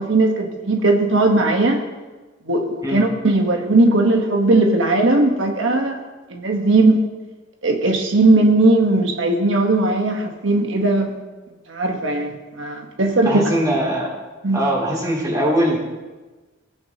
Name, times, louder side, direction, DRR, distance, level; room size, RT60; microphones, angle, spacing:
voice 1, 0.0-1.8 2.5-6.0 6.3-7.0 7.6-11.1 11.7-13.5 14.4-14.7, right 2 dB, 90° right, 3 dB, 1.2 m, -18 dB
voice 2, 13.2-14.2 14.5-15.8, right 1 dB, 20° right, -3 dB, 2.7 m, -21 dB
17.0 x 9.5 x 2.9 m, 1.2 s
head